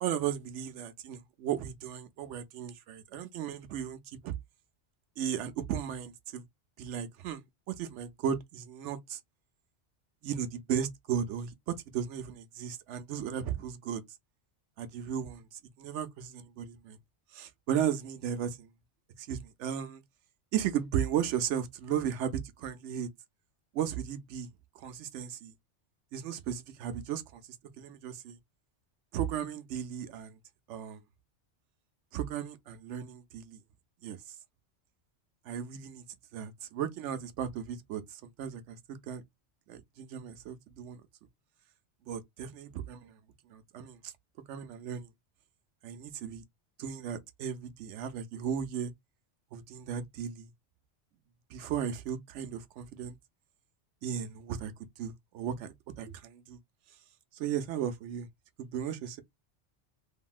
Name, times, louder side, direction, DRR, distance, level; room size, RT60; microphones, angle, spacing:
voice 1, 0.0-4.0 4.2-4.3 5.2-6.4 6.8-9.2 10.2-14.0 14.8-17.0 17.3-18.7 19.2-20.0 20.5-23.1 23.7-24.5 24.8-25.5 26.1-27.4 27.8-28.4 29.1-30.4 30.7-31.0 32.1-33.6 34.0-34.2 35.5-36.0 36.3-39.2 39.7-41.0 42.1-43.2 43.5-44.1 44.5-45.1 45.8-46.4 46.8-48.9 49.5-50.5 51.5-53.2 54.0-54.7 55.0-56.6 57.3-58.3 58.6-59.2, right 9 dB, 80° right, 0.9 m, -35 dB
2.9 x 2.6 x 2.3 m
omnidirectional pair, 1.2 m